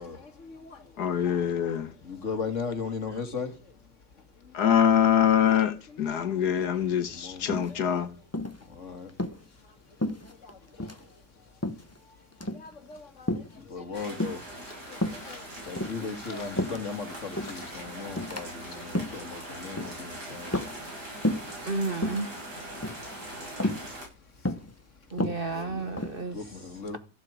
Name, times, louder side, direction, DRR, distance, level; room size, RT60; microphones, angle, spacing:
voice 1, 0.0-0.8 2.0-3.5 7.2-7.4 8.8-9.1 12.5-13.3 13.7-14.4 14.9-20.5 25.5-27.0, left 5 dB, 45° left, 2.3 m, -37 dB
voice 2, 1.0-1.9 4.5-8.1, left 9 dB, 75° left, 1.7 m, -24 dB
sound 1, 7.5-8.0 8.3-8.6 9.1-9.4 10.0-10.5 10.8-11.0 11.6-12.0 12.3-12.7 13.3-13.6 14.2-14.6 15.0-15.3 15.7-17.0 17.4-17.6 18.2-18.4 18.8-19.2 19.8-20.0 20.5-21.0 21.2-21.6 21.9-22.3 22.8-23.1 23.6-23.9 24.4-24.7 25.1-26.2, left 1 dB, 10° left, 0.9 m, -31 dB
sound 2, 13.9-24.1, right 1 dB, 85° right, 7.9 m, -41 dB
voice 3, 21.7-22.3 25.1-27.0, right 3 dB, 40° right, 1.0 m, -33 dB
14.5 x 12.0 x 5.0 m
omnidirectional pair, 1.7 m